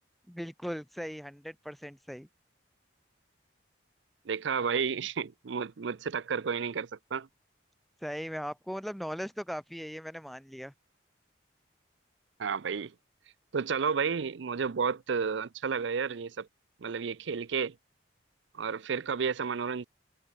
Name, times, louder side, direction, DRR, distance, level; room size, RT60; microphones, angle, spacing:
voice 1, 0.3-2.3 8.0-10.7, equal, ahead, 1.8 m, -38 dB
voice 2, 4.3-7.3 12.4-12.9 13.5-16.5 16.8-17.8 18.5-19.8, right 6 dB, 70° right, 0.5 m, -31 dB
head